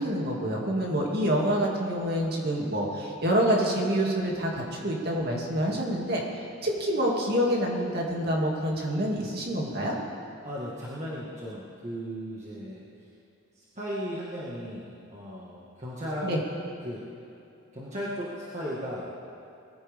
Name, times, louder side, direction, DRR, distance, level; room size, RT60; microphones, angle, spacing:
voice 1, 0.0-6.2 6.6-10.0 16.2-16.4, equal, 50° right, -2 dB, 2.6 m, -27 dB
voice 2, 10.4-12.8 13.5-16.3 16.8-17.0 17.7-19.1, equal, 35° right, -7 dB, 1.9 m, -36 dB
22.0 x 15.0 x 3.7 m, 2.6 s
head